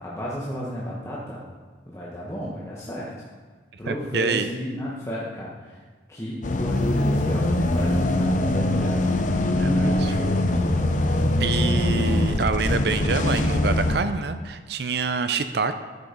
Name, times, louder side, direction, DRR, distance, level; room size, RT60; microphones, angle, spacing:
voice 1, 0.0-1.4 1.9-3.1 3.8-5.8 6.1-9.0 9.4-10.7 11.3-12.0, equal, 15° left, -6 dB, 1.3 m, -32 dB
voice 2, 3.8-4.5 9.6-10.1 11.4-15.8, right 4 dB, 65° right, 10 dB, 0.5 m, -26 dB
sound 1, 6.4-14.0, left 1 dB, 45° left, 0.7 m, -22 dB
13.5 x 6.2 x 5.2 m, 1.4 s
head